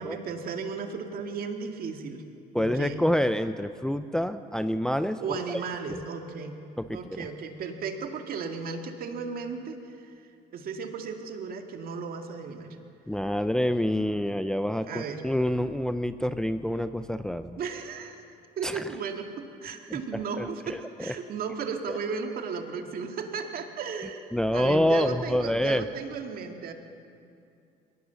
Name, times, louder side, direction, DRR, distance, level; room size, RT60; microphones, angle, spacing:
voice 1, 0.0-2.2 2.6-3.0 5.2-6.5 6.9-10.1 10.5-12.7 14.9-15.2 17.6-18.2 18.6-26.7, right 5 dB, 60° right, 5 dB, 2.1 m, -35 dB
voice 2, 2.5-5.2 5.5-5.6 5.9-6.0 6.8-7.3 13.1-17.6 18.6-18.8 19.9-20.0 20.4-20.8 21.1-21.2 21.9-22.0 24.3-25.8, equal, 5° left, 10 dB, 0.5 m, -27 dB
22.0 x 18.0 x 7.1 m, 2.5 s
cardioid pair, 110°, 17 cm